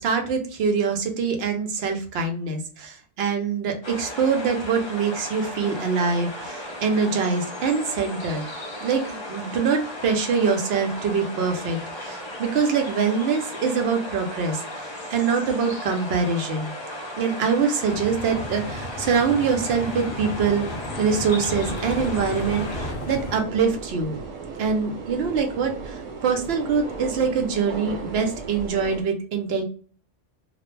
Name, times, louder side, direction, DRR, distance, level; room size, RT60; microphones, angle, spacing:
voice 1, 0.0-8.5 8.8-16.7 17.2-20.7 21.0-24.2 24.6-29.6, right 5 dB, 65° right, 4 dB, 0.8 m, -24 dB
sound 1, 3.8-22.9, left 1 dB, 35° left, 0.5 m, -36 dB
sound 2, 17.9-23.4, left 1 dB, 65° left, 0.8 m, -34 dB
sound 3, 21.5-29.0, right 4 dB, 90° right, 1.1 m, -36 dB
2.3 x 2.0 x 3.0 m, 0.42 s
omnidirectional pair, 1.3 m